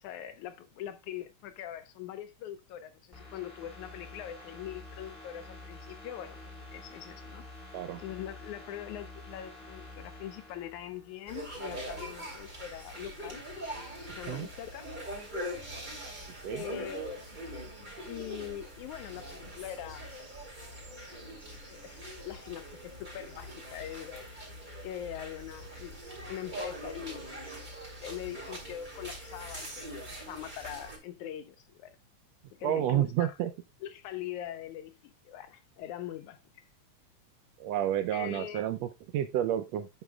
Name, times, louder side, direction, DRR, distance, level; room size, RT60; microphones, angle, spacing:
voice 1, 0.0-13.4 14.2-14.9 16.5-17.3 18.1-20.1 21.7-24.5 24.8-26.0 26.3-27.4 28.0-32.0 32.5-33.3 33.8-36.6 38.1-38.7, left 11 dB, 80° left, 2.3 m, -42 dB
sound 1, 3.1-11.8 12.1-12.3, left 2 dB, 20° left, 2.3 m, -49 dB
sound 2, 11.3-31.0, equal, 15° right, 2.6 m, -42 dB
voice 2, 32.6-33.5 37.6-39.9, right 11 dB, 80° right, 1.6 m, -30 dB
9.1 x 8.0 x 2.3 m
omnidirectional pair, 3.4 m